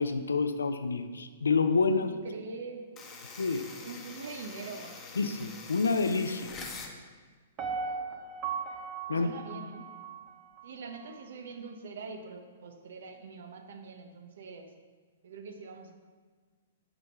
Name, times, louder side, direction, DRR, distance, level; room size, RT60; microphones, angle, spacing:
voice 1, 0.0-2.1 3.4-3.6 5.2-6.5 9.1-9.3, left 4 dB, 80° left, 9 dB, 0.5 m, -28 dB
voice 2, 1.9-2.9 3.8-5.0 9.1-9.9 10.6-14.7 15.2-15.9, right 4 dB, 65° right, 5 dB, 0.9 m, -43 dB
sound 1, 3.0-7.0, left 4 dB, 25° left, 1.0 m, -45 dB
Piano, 7.6-10.7 11.1-11.2, right 5 dB, 35° right, 0.8 m, -37 dB
6.7 x 4.4 x 5.7 m, 1.5 s
hypercardioid pair, 115°, 0 cm